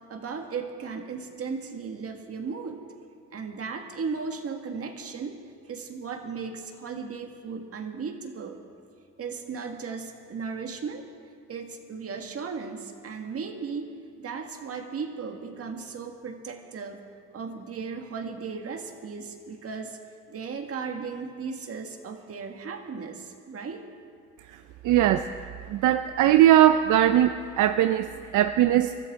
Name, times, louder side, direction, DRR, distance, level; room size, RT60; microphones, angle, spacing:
voice 1, 0.1-2.8 3.3-5.4 5.7-8.6 9.2-11.0 11.5-13.9 14.2-17.0 17.3-20.0 20.3-23.9, right 5 dB, 50° right, 4 dB, 1.7 m, -36 dB
voice 2, 24.8-25.3 25.7-29.0, right 12 dB, 80° right, 9 dB, 0.5 m, -20 dB
23.0 x 14.0 x 3.6 m, 2.3 s
cardioid pair, 90°, 30 cm